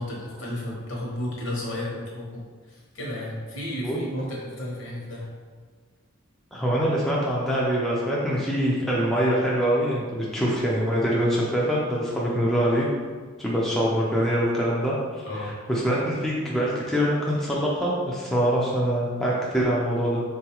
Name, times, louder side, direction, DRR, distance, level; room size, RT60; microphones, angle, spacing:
voice 1, 0.0-2.4 2.7-5.3 15.3-15.5, left 1 dB, 70° left, -4 dB, 0.9 m, -33 dB
voice 2, 6.5-12.9 13.4-20.2, equal, ahead, -5 dB, 0.4 m, -24 dB
3.7 x 2.3 x 2.9 m, 1.5 s
head